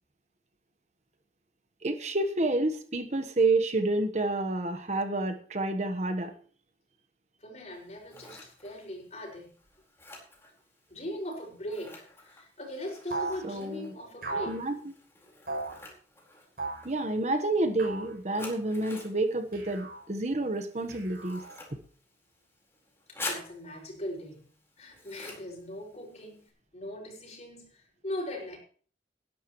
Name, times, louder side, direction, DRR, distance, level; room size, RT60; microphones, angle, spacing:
voice 1, 1.8-6.3 13.4-13.9 14.5-14.9 16.8-21.4, right 2 dB, 40° right, 8 dB, 1.2 m, -29 dB
voice 2, 7.4-9.5 10.9-14.6 23.1-24.5 24.8-26.5 26.7-28.6, left 1 dB, 40° left, 0 dB, 5.7 m, -40 dB
Scissors, 7.7-26.5, left 2 dB, 15° left, 4.3 m, -48 dB
sound 1, 13.1-13.4 14.2-14.6 15.5-15.8 16.6-16.9 17.8-18.1 19.5-20.0 20.9-21.6, right 3 dB, 55° right, 7.4 m, -36 dB
19.0 x 11.5 x 3.1 m, 0.43 s
head